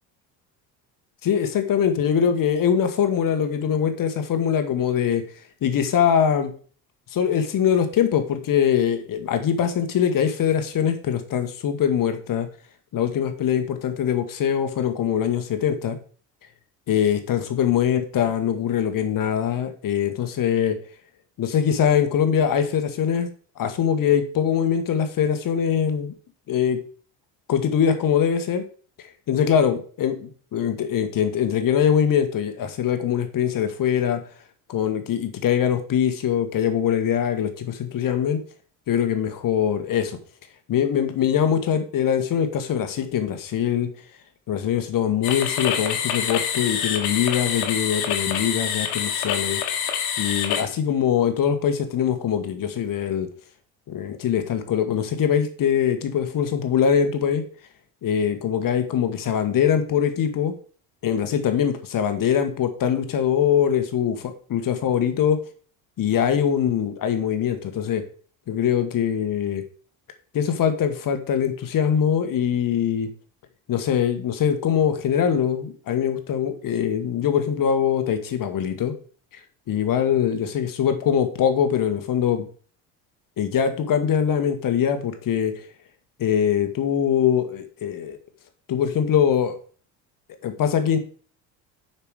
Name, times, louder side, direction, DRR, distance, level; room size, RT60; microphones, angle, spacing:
voice 1, 1.2-5.2 5.6-6.5 7.1-12.5 12.9-16.0 16.9-20.8 21.4-23.3 23.6-26.1 26.5-26.8 27.5-28.6 29.0-34.2 34.7-38.4 38.9-40.2 40.7-43.9 44.5-49.6 50.2-53.3 53.9-57.4 58.0-60.5 61.0-65.4 66.0-68.0 68.5-69.6 70.3-73.1 73.7-78.9 79.7-82.4 83.4-85.5 86.2-88.2 88.7-89.6 90.4-91.0, left 8 dB, 50° left, 8 dB, 1.5 m, -22 dB
sound 1, 45.2-50.6, left 8 dB, 80° left, 1.5 m, -26 dB
6.8 x 5.8 x 4.8 m, 0.42 s
hypercardioid pair, 75°, 43 cm